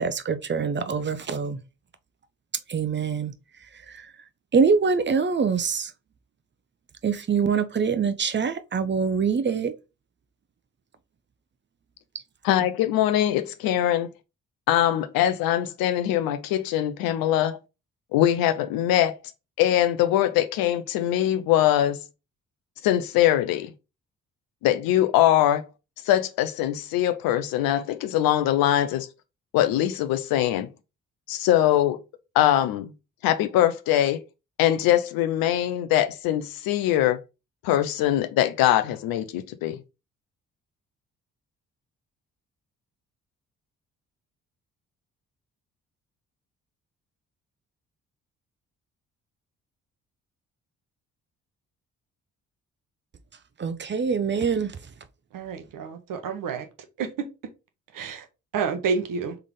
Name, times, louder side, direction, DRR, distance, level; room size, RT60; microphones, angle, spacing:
voice 1, 0.0-1.6 2.7-3.3 3.9-4.1 4.5-5.9 7.0-9.7 53.6-54.8, right 5 dB, 30° right, 0.7 m, -24 dB
voice 2, 12.4-14.1 14.7-17.6 18.1-19.1 19.6-22.0 22.8-23.7 24.6-25.6 26.1-29.1 29.5-30.7 31.3-32.0 32.3-32.9 33.2-34.2 34.6-37.2 37.6-39.8, left 12 dB, 65° left, 0.6 m, -22 dB
voice 3, 55.3-56.7 57.0-57.3 57.9-58.2 58.5-59.4, right 5 dB, 55° right, 0.9 m, -29 dB
3.7 x 3.3 x 3.7 m
hypercardioid pair, 40°, 39 cm